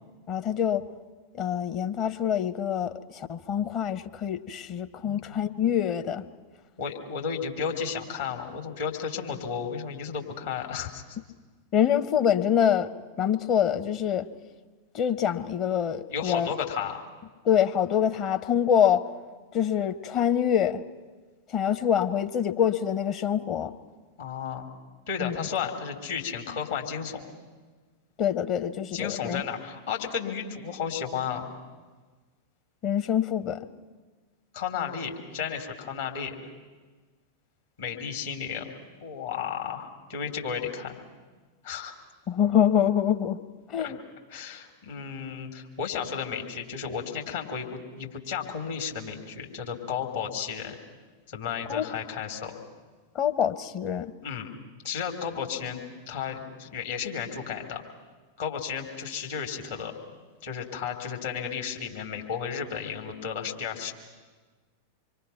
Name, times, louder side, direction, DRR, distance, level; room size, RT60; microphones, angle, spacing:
voice 1, 0.3-0.8 1.3-6.2 11.7-12.9 13.2-14.3 14.9-16.5 17.4-19.0 19.5-20.8 21.5-23.7 25.2-25.5 28.2-29.4 32.8-33.7 42.3-43.4 43.7-44.0 51.7-51.9 53.1-54.1, left 9 dB, 35° left, 9 dB, 1.0 m, -25 dB
voice 2, 5.0-5.4 6.8-11.2 16.1-17.0 24.2-24.7 25.1-27.3 28.9-31.5 34.5-36.4 37.8-38.7 39.0-41.0 41.6-41.9 43.8-43.9 44.3-50.8 51.3-52.6 54.2-54.5 54.8-57.8 58.4-59.9 60.4-63.9, left 7 dB, 60° left, 1 dB, 3.4 m, -33 dB
26.5 x 23.5 x 5.9 m, 1.4 s
figure-of-eight pair, 90°, 0 cm